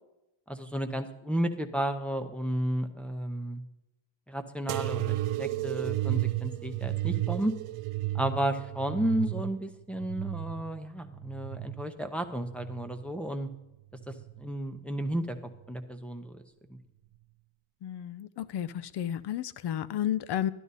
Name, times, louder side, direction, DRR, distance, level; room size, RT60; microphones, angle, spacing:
voice 1, 0.5-3.6 4.3-7.5 8.1-13.5 14.1-15.4 15.7-16.4 16.7-16.8, right 1 dB, ahead, 4 dB, 0.7 m, -33 dB
sound 1, 4.7-11.9 12.4-13.2 14.0-14.5 15.5-15.6, right 16 dB, 85° right, 0.6 m, -33 dB
voice 2, 17.8-20.5, left 11 dB, 55° left, 17 dB, 0.6 m, -32 dB
12.5 x 11.0 x 4.1 m, 0.94 s
cardioid pair, 160°, 50 cm